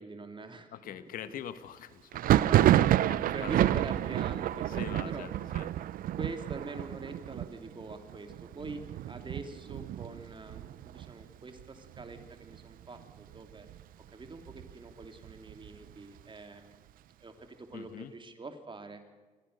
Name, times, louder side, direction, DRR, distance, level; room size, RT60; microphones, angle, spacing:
voice 1, 0.0-1.0 1.3-1.4 2.3-5.3 6.2-13.7 14.1-16.8 17.2-19.1, right 3 dB, 35° right, 7 dB, 3.0 m, -44 dB
voice 2, 0.7-2.3 3.1-3.8 4.7-5.7 17.7-18.1, left 10 dB, 75° left, 13 dB, 1.2 m, -44 dB
Thunder, 2.1-11.6 11.9-12.6 12.8-13.8 14.2-15.9, right 13 dB, 75° right, 0.6 m, -29 dB
25.5 x 16.0 x 6.7 m, 1.3 s
supercardioid pair, 65°, 15 cm